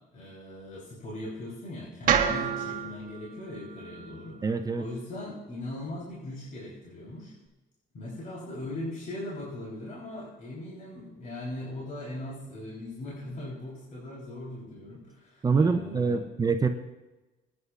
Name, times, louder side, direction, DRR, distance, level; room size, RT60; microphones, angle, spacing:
voice 1, 0.1-4.5 4.7-7.3 7.9-16.2, left 1 dB, 50° left, -5 dB, 3.9 m, -39 dB
sound 1, 2.1-6.2, right 8 dB, 55° right, 1.4 m, -31 dB
voice 2, 4.4-4.8 15.4-16.7, right 4 dB, 20° right, 7 dB, 0.6 m, -25 dB
22.0 x 9.6 x 2.5 m, 1.1 s
cardioid pair, 110°, 17 cm